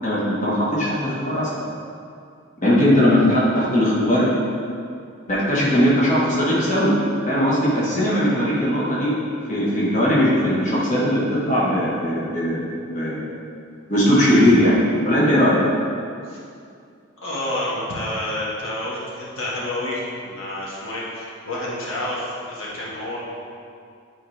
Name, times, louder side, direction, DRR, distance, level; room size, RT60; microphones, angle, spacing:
voice 1, 0.0-1.5 2.6-4.3 5.3-6.9 7.3-9.1 9.5-12.7 12.9-13.2 13.9-14.8 15.0-15.6, equal, 35° left, -8 dB, 1.4 m, -19 dB
voice 2, 17.2-23.2, left 1 dB, 90° left, -6 dB, 1.5 m, -29 dB
9.1 x 4.1 x 3.3 m, 2.4 s
head